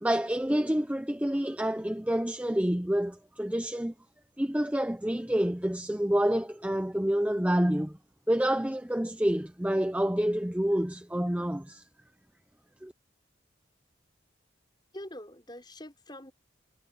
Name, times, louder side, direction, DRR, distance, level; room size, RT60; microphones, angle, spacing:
voice 1, 0.0-3.9 4.4-8.0 8.3-11.8 12.8-12.9, equal, 5° right, 0.6 m, -28 dB
voice 2, 14.9-16.3, left 1 dB, 20° left, 6.0 m, -44 dB
head